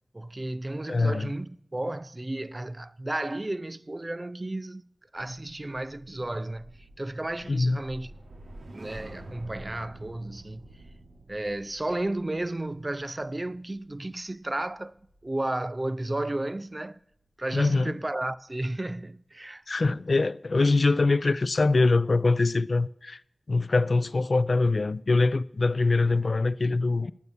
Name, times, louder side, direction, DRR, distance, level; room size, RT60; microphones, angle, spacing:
voice 1, 0.1-4.8 5.1-8.1 8.7-10.7 11.3-15.0 15.2-17.0 17.4-19.6, right 1 dB, 30° right, 0.3 m, -33 dB
voice 2, 0.9-1.3 7.5-7.8 17.5-17.9 19.7-23.2 23.5-27.1, left 3 dB, 65° left, 0.3 m, -23 dB
sound 1, 5.1-15.6 15.9-16.2, right 1 dB, 90° right, 1.1 m, -48 dB
10.5 x 7.0 x 6.8 m
wide cardioid pair, 75°, 0 cm